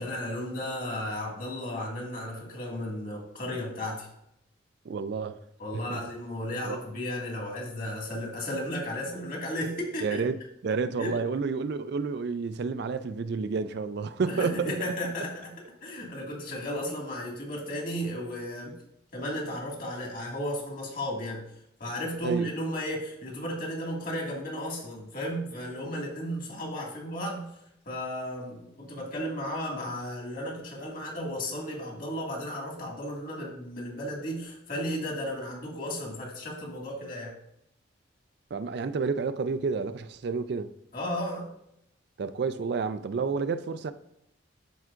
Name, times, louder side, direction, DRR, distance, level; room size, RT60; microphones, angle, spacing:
voice 1, 0.0-4.1 5.6-10.2 11.0-11.2 14.3-15.6 15.8-18.8 19.1-21.4 21.8-27.5 27.9-37.4 40.9-41.5, equal, 45° left, 1.9 m, -34 dB
voice 2, 4.9-5.4 5.7-6.0 6.6-6.8 10.0-14.7 22.2-22.5 38.5-40.7 42.2-43.9, right 5 dB, 60° right, 0.4 m, -30 dB
12.0 x 4.6 x 2.5 m
head